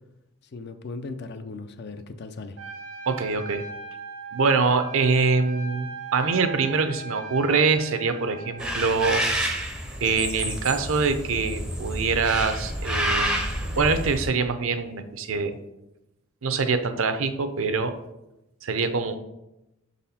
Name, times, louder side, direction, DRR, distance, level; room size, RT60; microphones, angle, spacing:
voice 1, 0.5-2.6, left 3 dB, 50° left, 9 dB, 0.4 m, -37 dB
Trumpet, 2.6-9.3, right 4 dB, 80° right, 1.0 m, -39 dB
voice 2, 3.1-3.6 4.3-9.2 10.0-13.5 13.8-15.6 16.4-17.9 18.6-19.2, right 4 dB, 65° right, 9 dB, 0.6 m, -24 dB
sound 1, 8.6-14.3, right 1 dB, 5° right, 0.5 m, -29 dB
6.1 x 4.1 x 4.2 m, 0.91 s
head